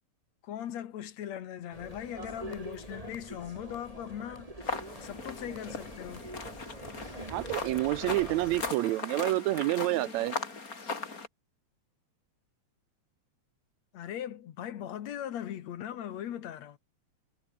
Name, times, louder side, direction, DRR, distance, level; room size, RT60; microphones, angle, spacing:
voice 1, 0.4-6.3 13.9-16.8, left 10 dB, 70° left, 2.6 m, -39 dB
sound 1, 1.7-8.7, right 1 dB, 10° right, 3.9 m, -44 dB
sound 2, 4.6-11.3, left 4 dB, 30° left, 3.2 m, -39 dB
voice 2, 7.3-10.4, right 17 dB, 80° right, 1.8 m, -28 dB
omnidirectional pair, 3.4 m